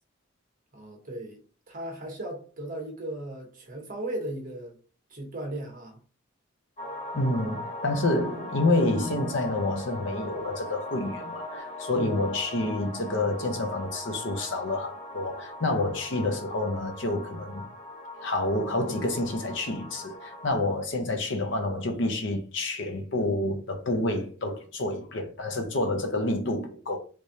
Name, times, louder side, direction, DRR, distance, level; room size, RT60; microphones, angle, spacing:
voice 1, 0.7-4.8 5.1-6.0 11.9-12.2, right 1 dB, 40° right, 1.0 m, -37 dB
sound 1, 6.8-20.5, left 1 dB, 30° left, 0.9 m, -39 dB
voice 2, 7.1-17.7 18.2-27.0, left 2 dB, 60° left, 0.7 m, -28 dB
3.3 x 3.2 x 2.7 m
head